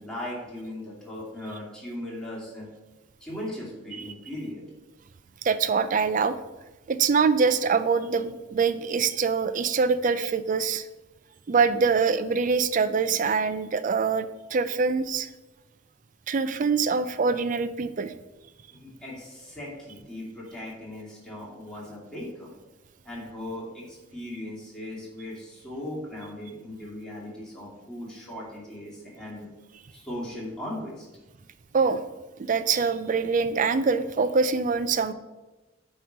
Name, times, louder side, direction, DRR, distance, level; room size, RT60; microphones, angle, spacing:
voice 1, 0.0-2.7 3.2-4.6 18.7-22.5 23.0-29.5 29.9-31.1, left 1 dB, 5° left, -6 dB, 2.1 m, -38 dB
voice 2, 5.4-6.4 6.9-10.8 11.5-15.3 16.3-18.1 31.7-32.0 32.4-35.1, right 5 dB, 45° right, 12 dB, 0.4 m, -24 dB
8.7 x 3.1 x 5.0 m, 1.1 s
head